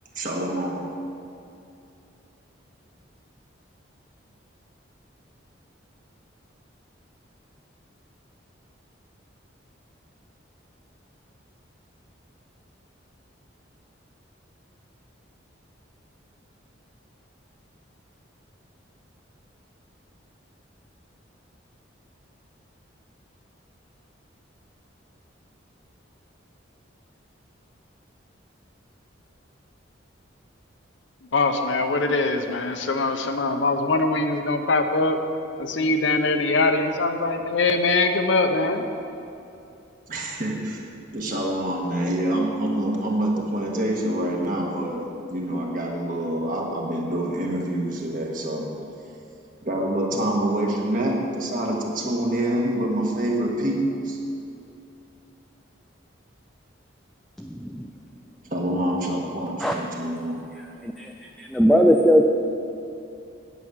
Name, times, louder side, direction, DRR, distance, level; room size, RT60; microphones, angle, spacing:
voice 1, 0.1-0.9 40.1-40.8 41.1-48.7 49.6-54.2 58.5-60.4, right 1 dB, 45° right, -1 dB, 1.4 m, -26 dB
voice 2, 31.3-35.2 35.6-38.8, left 3 dB, 70° left, 6 dB, 0.8 m, -22 dB
voice 3, 57.4-57.9 59.6-59.8 60.8-61.1 61.4-62.2, equal, ahead, 1 dB, 0.3 m, -19 dB
9.2 x 6.0 x 7.9 m, 2.7 s
head